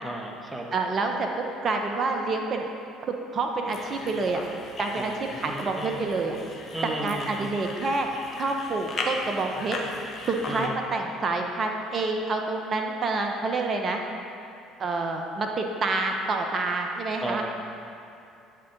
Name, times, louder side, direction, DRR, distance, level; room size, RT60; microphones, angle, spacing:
voice 1, 0.0-0.6 5.0-6.0 6.7-7.5 10.5-10.8 17.2-17.5, right 1 dB, 10° right, 1 dB, 0.8 m, -35 dB
voice 2, 0.7-2.7 3.1-4.4 4.8-6.4 7.0-8.1 8.4-9.8 10.3-14.0 14.8-17.4, right 3 dB, 35° right, 2 dB, 0.6 m, -28 dB
sound 1, 3.7-10.7, left 3 dB, 40° left, 0.7 m, -37 dB
8.5 x 3.7 x 3.6 m, 2.7 s
figure-of-eight pair, 55°, 0 cm